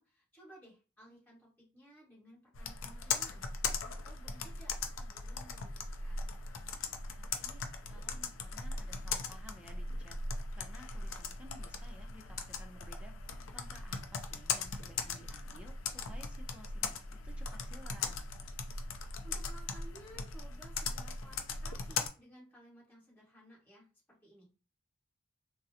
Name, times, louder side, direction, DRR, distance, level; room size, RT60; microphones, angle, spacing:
voice 1, 0.0-3.5 3.8-6.4 19.2-23.9 24.2-24.5, right 1 dB, 10° left, -6 dB, 1.6 m, -57 dB
Computer keyboard, 2.5-22.1, left 4 dB, 80° left, 0.4 m, -39 dB
voice 2, 7.2-10.2 10.5-13.1 13.5-17.0 17.2-18.2, equal, 5° right, 3 dB, 0.5 m, -56 dB
3.6 x 2.0 x 2.8 m, 0.34 s
head